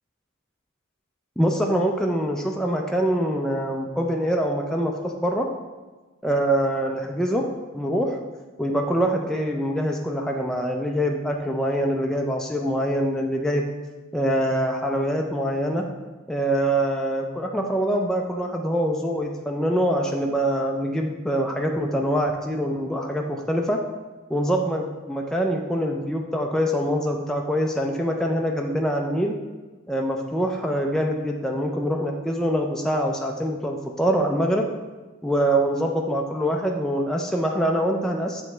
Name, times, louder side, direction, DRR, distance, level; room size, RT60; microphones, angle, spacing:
voice 1, 1.4-5.5 6.2-7.5 7.7-8.2 8.6-13.7 14.1-15.9 16.3-23.8 24.3-29.4 29.9-34.7 35.2-38.4, equal, 5° left, 1 dB, 0.3 m, -24 dB
7.8 x 3.1 x 4.3 m, 1.3 s
head